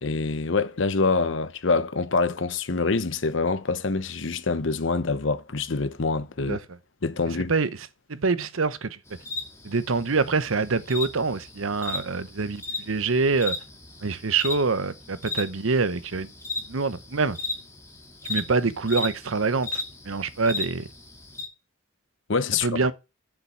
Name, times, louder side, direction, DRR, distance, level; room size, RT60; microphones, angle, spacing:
voice 1, 0.0-6.6 7.0-7.5 22.3-22.7, left 4 dB, 65° left, 0.9 m, -25 dB
voice 2, 8.1-9.0 9.6-13.5 14.0-16.3 16.7-17.4 18.3-20.9 22.6-22.9, right 4 dB, 80° right, 0.9 m, -25 dB
sound 1, 9.1-21.5, left 3 dB, 15° left, 2.1 m, -36 dB
7.6 x 7.0 x 7.1 m
head